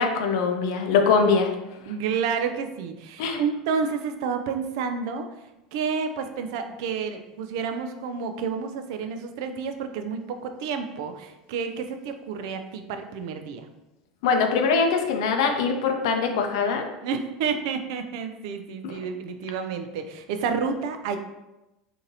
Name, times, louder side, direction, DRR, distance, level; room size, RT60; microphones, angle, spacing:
voice 1, 0.0-1.5 3.2-3.4 14.2-16.9 18.8-19.0, left 5 dB, 70° left, 4 dB, 0.5 m, -22 dB
voice 2, 1.9-5.3 5.7-13.7 17.0-21.2, right 6 dB, 65° right, 7 dB, 0.4 m, -30 dB
3.8 x 2.6 x 2.7 m, 0.97 s
hypercardioid pair, 80°, 3 cm